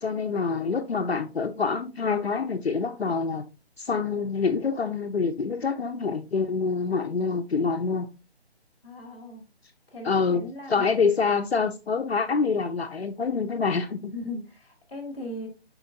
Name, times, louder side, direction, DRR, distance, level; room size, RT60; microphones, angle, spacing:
voice 1, 0.0-3.5 3.8-8.1 10.0-14.1, left 5 dB, 70° left, 0.6 m, -26 dB
voice 2, 8.8-9.4 9.9-10.9 14.1-15.5, left 1 dB, 5° left, 0.6 m, -38 dB
4.9 x 4.2 x 2.5 m
figure-of-eight pair, 145°, 32 cm